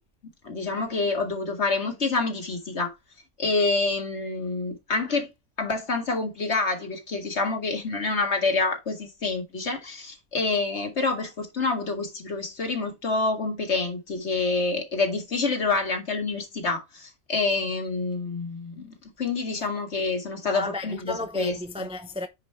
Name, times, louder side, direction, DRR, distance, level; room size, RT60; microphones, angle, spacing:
voice 1, 0.4-2.9 3.4-5.3 5.6-21.0 21.3-21.5, left 3 dB, 55° left, 2.2 m, -27 dB
voice 2, 20.4-22.3, left 2 dB, 5° right, 0.5 m, -32 dB
9.6 x 5.1 x 3.3 m
omnidirectional pair, 1.4 m